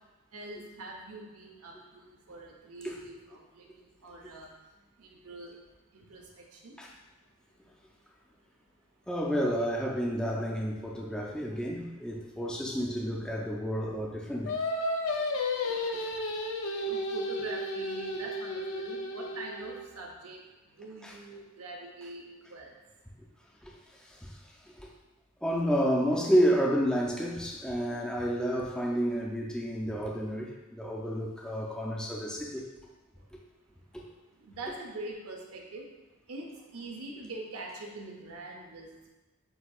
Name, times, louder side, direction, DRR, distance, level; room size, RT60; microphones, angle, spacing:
voice 1, 0.3-3.7 4.0-4.5 5.0-5.6 6.1-6.8 16.9-20.4 20.8-22.2 22.5-22.7 34.4-35.8 36.3-39.1, right 2 dB, 85° right, 0 dB, 0.7 m, -43 dB
voice 2, 9.1-14.5 21.0-21.2 23.6-23.7 24.1-24.3 24.8-24.9 25.4-32.7 33.3-33.4 33.9-34.0, equal, 5° left, -2 dB, 0.4 m, -30 dB
Singing, 14.5-19.8, left 1 dB, 70° left, 0.5 m, -33 dB
7.8 x 2.7 x 2.3 m, 1.1 s
head